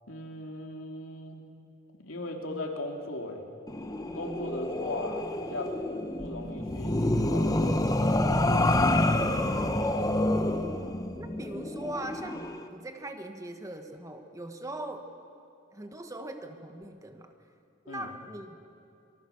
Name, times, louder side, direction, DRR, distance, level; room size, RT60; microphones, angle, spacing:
voice 1, 0.1-1.4 2.0-3.5 4.1-5.8 6.2-7.9 8.2-9.0 17.9-18.1, left 1 dB, 85° left, 2 dB, 2.8 m, -38 dB
sound 1, 3.7-12.6, left 1 dB, 20° left, 1.0 m, -28 dB
voice 2, 11.2-12.4 12.7-15.1 15.7-17.3 17.8-18.6, right 1 dB, 15° right, 6 dB, 1.3 m, -40 dB
26.5 x 19.5 x 7.0 m, 2.6 s
head